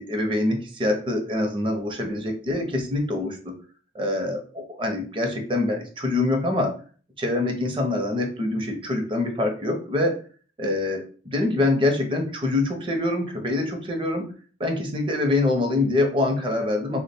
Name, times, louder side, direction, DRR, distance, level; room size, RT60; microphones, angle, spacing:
voice 1, 0.0-3.5 3.9-6.7 7.2-10.2 10.6-14.3 14.6-17.0, left 2 dB, 30° right, 4 dB, 0.6 m, -25 dB
3.2 x 2.1 x 4.2 m, 0.41 s
head